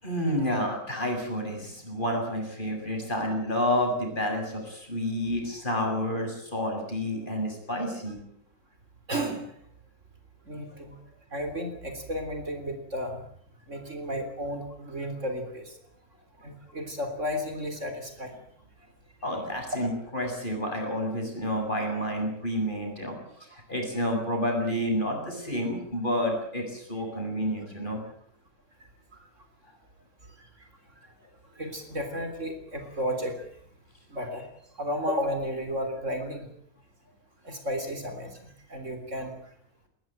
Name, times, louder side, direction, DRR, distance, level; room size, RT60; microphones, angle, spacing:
voice 1, 0.0-8.2 19.2-28.0, equal, 30° left, 2 dB, 7.8 m, -29 dB
voice 2, 9.1-9.5 10.5-11.0 11.3-13.3 13.7-15.8 16.4-18.4 29.1-29.3 30.4-30.7 31.6-33.4 34.1-34.5 34.8-36.5 37.4-39.3, equal, 50° right, 7 dB, 3.9 m, -33 dB
20.5 x 20.0 x 9.0 m, 0.65 s
omnidirectional pair, 1.6 m